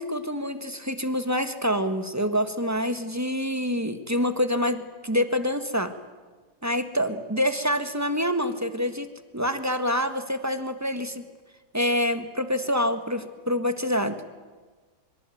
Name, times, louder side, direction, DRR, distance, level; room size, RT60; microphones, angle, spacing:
voice 1, 0.0-5.9 6.6-9.1 9.3-11.2 11.7-14.2, equal, 10° right, 9 dB, 1.4 m, -26 dB
24.5 x 24.0 x 9.2 m, 1.4 s
omnidirectional pair, 1.8 m